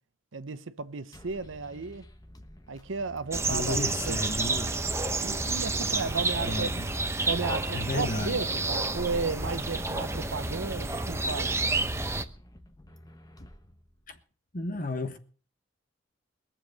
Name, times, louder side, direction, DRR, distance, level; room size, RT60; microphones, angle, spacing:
voice 1, 0.3-2.0 2.7-3.8 4.1-4.2 5.2-6.7 7.3-11.5, right 4 dB, 75° right, 0.9 m, -34 dB
sound 1, 1.1-14.2, left 1 dB, 20° left, 1.1 m, -52 dB
sound 2, 3.3-12.2, right 3 dB, 15° right, 0.9 m, -30 dB
voice 2, 3.5-4.7 6.4-6.8 7.7-8.4 14.1-14.2 14.5-15.2, left 2 dB, 45° left, 1.3 m, -33 dB
22.0 x 7.5 x 6.5 m
head